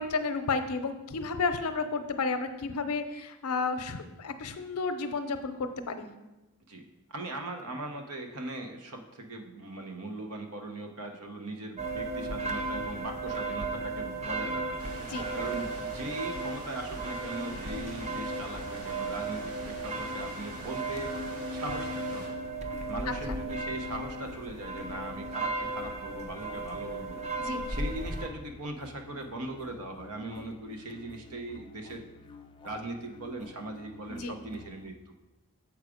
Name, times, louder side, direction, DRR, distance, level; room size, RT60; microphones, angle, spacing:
voice 1, 0.0-6.1 15.0-15.3 23.3-23.4 27.4-27.6 34.1-34.3, left 4 dB, 85° left, 9 dB, 0.6 m, -32 dB
voice 2, 6.7-14.8 15.3-21.1 21.5-22.4 22.9-27.2 27.7-32.0 32.6-35.1, right 2 dB, 85° right, 4 dB, 0.9 m, -39 dB
sound 1, 11.8-28.3, right 2 dB, 30° right, 0.6 m, -35 dB
sound 2, 14.8-22.3, right 1 dB, 65° right, 1.4 m, -45 dB
sound 3, 18.0-34.9, left 4 dB, 25° left, 0.4 m, -52 dB
7.3 x 4.8 x 5.0 m, 1.0 s
head